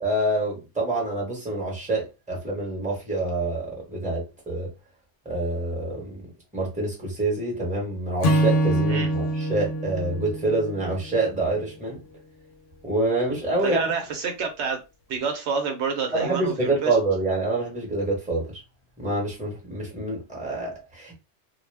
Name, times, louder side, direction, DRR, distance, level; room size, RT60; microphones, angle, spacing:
voice 1, 0.0-4.7 5.2-6.2 6.5-12.0 12.8-13.8 16.1-18.6 19.0-21.1, right 2 dB, 5° right, 1.0 m, -26 dB
Acoustic guitar / Strum, 8.2-11.5, right 1 dB, 80° left, 0.9 m, -25 dB
voice 2, 13.6-14.8 15.1-17.0, right 5 dB, 75° right, 0.9 m, -28 dB
2.3 x 2.1 x 3.3 m
omnidirectional pair, 1.2 m